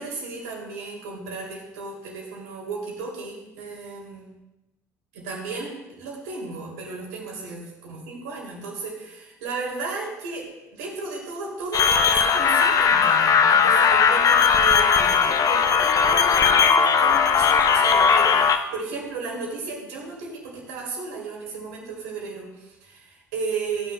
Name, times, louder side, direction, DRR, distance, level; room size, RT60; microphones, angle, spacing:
voice 1, 0.0-4.3 5.1-10.5 10.7-23.9, right 4 dB, 65° right, -1 dB, 2.7 m, -34 dB
sound 1, 11.7-18.6, left 6 dB, 40° left, 0.7 m, -18 dB
15.0 x 9.5 x 2.2 m, 0.98 s
figure-of-eight pair, 55°, 9 cm